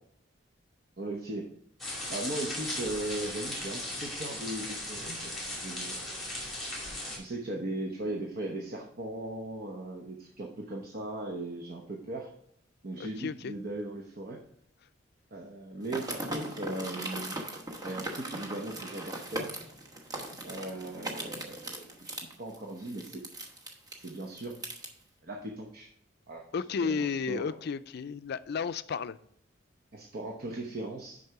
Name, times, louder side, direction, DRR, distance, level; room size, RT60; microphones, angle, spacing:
voice 1, 1.0-1.5 2.1-6.0 7.0-12.3 12.8-14.4 15.3-17.4 17.8-19.5 20.4-23.2 23.9-24.6 25.2-25.9 26.3-26.4 26.8-27.6 29.9-31.2, right 2 dB, 55° right, 0.9 m, -38 dB
sound 1, 1.8-7.2, left 1 dB, ahead, 2.5 m, -37 dB
voice 2, 13.0-13.5 26.5-29.2, left 5 dB, 60° left, 0.4 m, -33 dB
sound 2, 15.8-24.9, right 1 dB, 20° right, 1.0 m, -39 dB
6.6 x 5.4 x 4.6 m
head